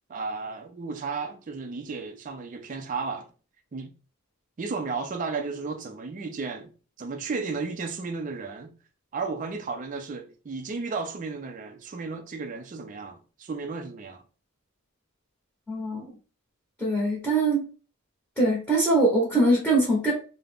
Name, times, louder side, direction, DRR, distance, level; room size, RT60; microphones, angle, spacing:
voice 1, 0.1-3.3 3.7-3.9 4.6-6.7 7.0-8.7 9.1-14.2, right 4 dB, 35° right, 0.3 m, -34 dB
voice 2, 15.7-16.0 16.8-17.7 18.4-20.1, right 2 dB, 5° left, 0.8 m, -22 dB
2.4 x 2.0 x 3.4 m
head